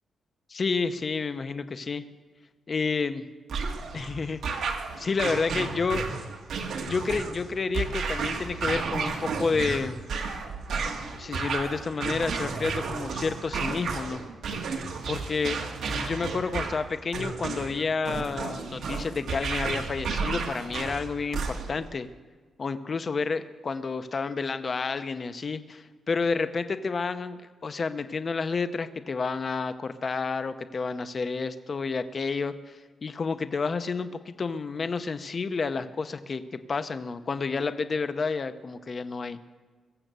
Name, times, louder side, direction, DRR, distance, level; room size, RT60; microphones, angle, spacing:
voice 1, 0.5-2.0 2.7-3.2 3.9-4.7 5.0-6.1 6.9-10.0 11.1-14.2 15.1-15.6 15.9-22.1 22.6-36.4 36.7-39.4, left 4 dB, 35° left, 11 dB, 0.7 m, -30 dB
sound 1, 3.5-21.9, right 4 dB, 75° right, 1.6 m, -32 dB
22.5 x 7.6 x 6.8 m, 1.4 s
wide cardioid pair, 160°, 0 cm